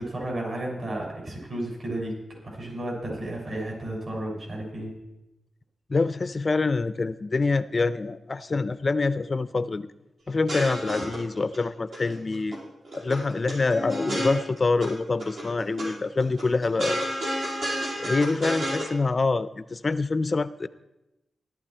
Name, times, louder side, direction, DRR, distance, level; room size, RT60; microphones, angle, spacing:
voice 1, 0.0-2.2 2.4-4.9, right 1 dB, 55° right, -2 dB, 6.2 m, -32 dB
voice 2, 5.9-9.9 10.3-12.6 13.0-17.1 18.0-20.7, left 3 dB, 30° left, 15 dB, 0.4 m, -26 dB
sound 1, 10.3-11.6 11.9-12.6 12.8-14.9 15.2-15.9 16.2-18.9, equal, 75° right, 5.6 m, -31 dB
16.5 x 11.5 x 4.4 m, 0.95 s
wide cardioid pair, 130°, 0 cm